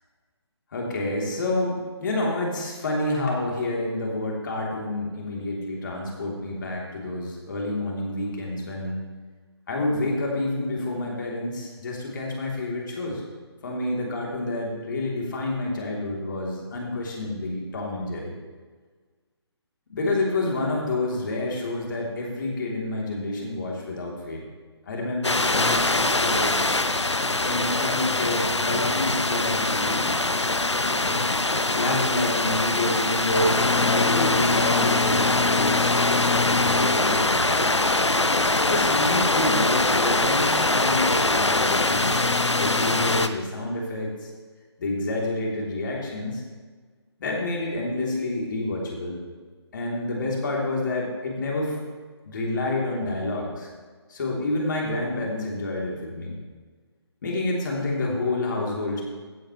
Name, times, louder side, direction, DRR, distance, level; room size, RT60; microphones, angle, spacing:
voice 1, 0.7-9.0 9.7-13.2 13.6-18.3 19.9-24.4 24.9-26.6 27.4-30.1 30.6-37.7 38.6-42.3 42.6-44.3 44.8-46.4 47.2-49.2 49.7-51.8 52.2-53.7 54.1-56.3 57.2-59.0, left 2 dB, 45° left, -2 dB, 3.2 m, -28 dB
sound 1, 25.2-43.3, left 2 dB, 90° left, 0.7 m, -22 dB
16.0 x 8.9 x 3.2 m, 1.5 s
figure-of-eight pair, 145°, 14 cm